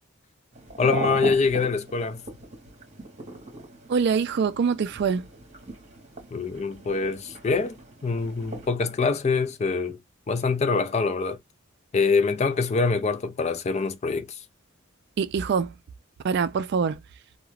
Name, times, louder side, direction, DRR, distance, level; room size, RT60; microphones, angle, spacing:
sound 1, 0.5-8.7, right 2 dB, 35° right, 1.0 m, -39 dB
voice 1, 0.8-2.2 6.3-7.8 8.0-10.0 10.3-11.4 11.9-14.4, left 4 dB, 30° left, 0.3 m, -24 dB
voice 2, 3.9-5.2 15.2-15.7 16.2-17.0, right 6 dB, 55° right, 0.3 m, -24 dB
2.4 x 2.1 x 3.0 m
head